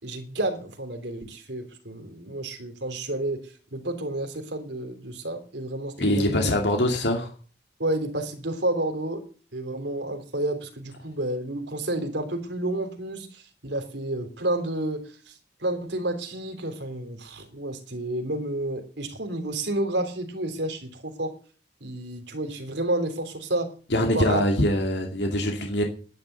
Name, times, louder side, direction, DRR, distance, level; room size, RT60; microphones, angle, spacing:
voice 1, 0.0-6.5 7.8-9.2 9.5-21.3 21.8-23.7 24.0-24.4, right 1 dB, 75° right, 6 dB, 3.4 m, -30 dB
voice 2, 6.0-7.3 23.9-25.8, left 1 dB, 65° left, 3 dB, 2.5 m, -23 dB
10.5 x 10.5 x 8.1 m, 0.40 s
head